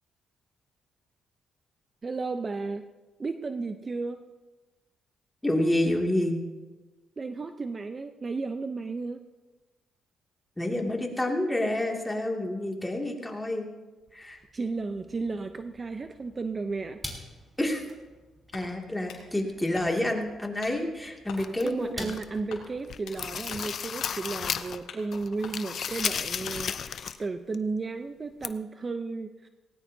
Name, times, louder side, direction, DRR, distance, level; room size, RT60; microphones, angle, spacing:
voice 1, 2.0-2.9 3.2-4.2 7.2-9.2 14.5-17.0 21.6-29.5, right 3 dB, 30° right, 8 dB, 0.7 m, -33 dB
voice 2, 5.4-6.4 10.6-13.7 14.1-14.4 17.6-17.8 18.5-22.1 23.5-23.6, left 1 dB, 10° left, 1 dB, 2.4 m, -28 dB
sound 1, 14.0-24.5, equal, 10° right, 3.6 m, -49 dB
sound 2, 18.5-19.3 19.7-20.2 20.6-20.8 21.3-21.5 22.0-22.1 22.5-23.2 23.5-23.7 24.0-24.2 24.6-25.1 25.4-26.0 26.4-27.1, left 6 dB, 85° left, 2.9 m, -44 dB
sound 3, 21.4-22.4 22.8-24.8 25.1-27.2 27.5-27.6 28.4-28.5, left 7 dB, 55° left, 0.6 m, -34 dB
18.0 x 17.5 x 2.8 m, 1.2 s
cardioid pair, 90°, 0 cm